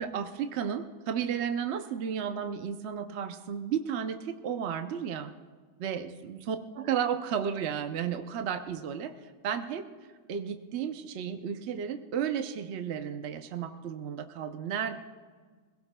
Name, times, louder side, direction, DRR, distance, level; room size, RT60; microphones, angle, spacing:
voice 1, 0.0-5.3 5.8-9.8 10.3-15.0, right 8 dB, 60° right, 7 dB, 0.8 m, -33 dB
25.0 x 17.0 x 2.2 m, 1.5 s
omnidirectional pair, 1.5 m